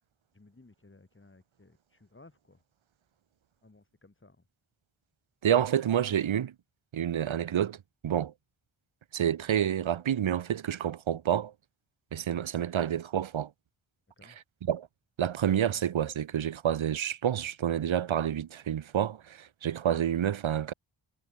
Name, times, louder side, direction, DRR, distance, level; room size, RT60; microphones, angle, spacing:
voice 1, 0.3-2.6 3.6-4.4 14.2-14.4, left 2 dB, 25° left, 7.2 m, -58 dB
voice 2, 5.4-6.5 6.9-8.3 9.1-11.5 12.1-13.5 14.6-14.9 15.2-20.7, right 9 dB, 80° right, 1.2 m, -28 dB
wide cardioid pair, 95°, 46 cm